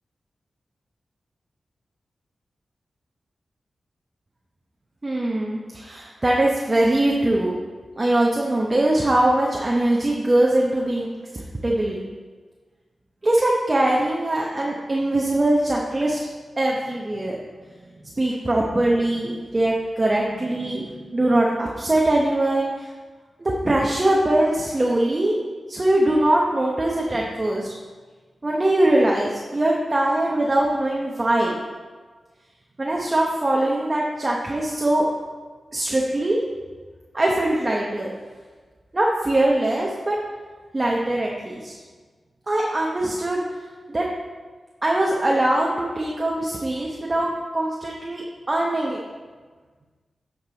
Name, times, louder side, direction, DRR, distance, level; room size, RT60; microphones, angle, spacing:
voice 1, 5.0-7.5 8.0-11.1 11.3-12.0 13.2-16.2 16.6-17.4 18.2-22.9 23.4-25.4 25.7-27.7 28.4-31.6 32.8-35.1 35.7-36.4 37.1-38.1 38.9-40.2 40.7-41.7 42.5-43.4 43.9-44.1 44.8-49.0, right 1 dB, 35° right, -3 dB, 1.0 m, -22 dB
8.7 x 5.3 x 4.0 m, 1.4 s
cardioid pair, 55°, 0 cm